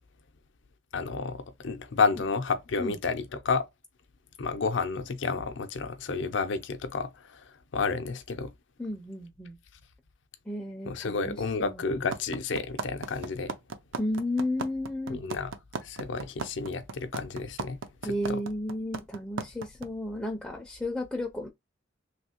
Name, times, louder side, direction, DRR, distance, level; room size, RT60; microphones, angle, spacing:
voice 1, 0.9-3.7 4.4-8.5 10.8-13.5 15.1-15.5 15.8-17.8 18.3-18.4, left 4 dB, 70° left, 0.5 m, -31 dB
voice 2, 8.8-9.6 10.5-11.8 14.0-15.2 18.0-21.5, left 1 dB, 5° left, 0.4 m, -33 dB
sound 1, 12.1-19.9, right 5 dB, 80° right, 0.5 m, -35 dB
3.2 x 2.6 x 2.8 m
head